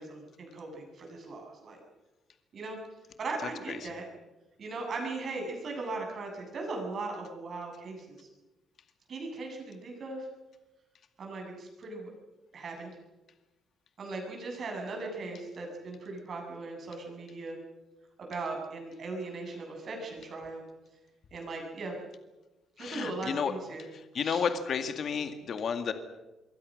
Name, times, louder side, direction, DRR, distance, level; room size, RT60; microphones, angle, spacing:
voice 1, 0.0-1.8 2.5-2.8 3.2-4.0 4.6-8.3 9.1-10.3 11.2-12.1 12.5-12.9 14.0-17.6 18.2-20.6 21.3-21.9 22.8-23.8 24.2-24.5, right 3 dB, 40° right, 1 dB, 7.9 m, -38 dB
voice 2, 22.8-23.5 24.1-25.9, left 6 dB, 45° left, 8 dB, 2.0 m, -31 dB
26.0 x 23.0 x 6.5 m, 1.1 s
cardioid pair, 145°, 0 cm